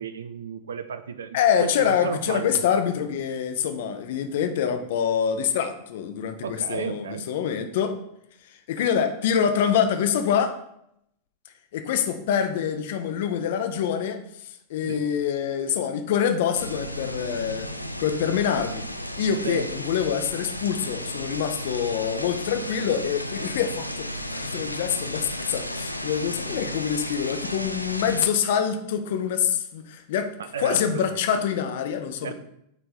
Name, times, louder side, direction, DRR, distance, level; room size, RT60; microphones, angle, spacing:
voice 1, 0.0-2.6 6.4-7.2 14.8-15.0 19.4-19.7 30.4-31.2 32.2-32.3, right 6 dB, 65° right, 11 dB, 0.5 m, -33 dB
voice 2, 1.3-8.0 8.4-10.6 11.7-17.7 18.0-18.8 19.2-30.3 30.6-32.3, left 8 dB, 55° left, 7 dB, 0.7 m, -25 dB
sound 1, 16.5-28.3, equal, 90° left, 0.4 m, -34 dB
8.1 x 3.4 x 4.2 m, 0.76 s
figure-of-eight pair, 90°, 0 cm